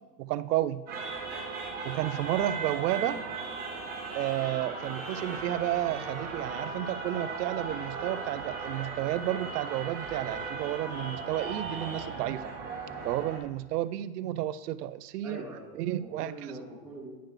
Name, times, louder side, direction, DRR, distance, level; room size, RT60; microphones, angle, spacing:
voice 1, 0.2-0.8 1.8-3.2 4.1-12.5 13.0-15.4 15.7-16.3, right 14 dB, 85° right, 15 dB, 0.6 m, -31 dB
sound 1, 0.9-13.4, right 4 dB, 20° right, 1.4 m, -37 dB
voice 2, 15.2-17.2, right 1 dB, 5° right, -6 dB, 2.2 m, -43 dB
10.0 x 6.6 x 3.2 m, 1.3 s
supercardioid pair, 145°, 46 cm